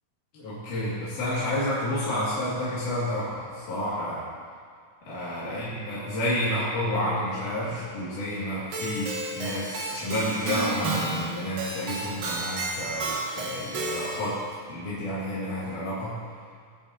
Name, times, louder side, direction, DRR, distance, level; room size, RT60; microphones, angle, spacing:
voice 1, 0.3-4.3 5.0-14.4 14.7-16.2, left 1 dB, 70° left, -10 dB, 3.6 m, -30 dB
Keyboard (musical), 8.7-14.4, right 2 dB, 90° right, 3.1 m, -32 dB
18.0 x 8.6 x 2.8 m, 2.1 s
omnidirectional pair, 3.8 m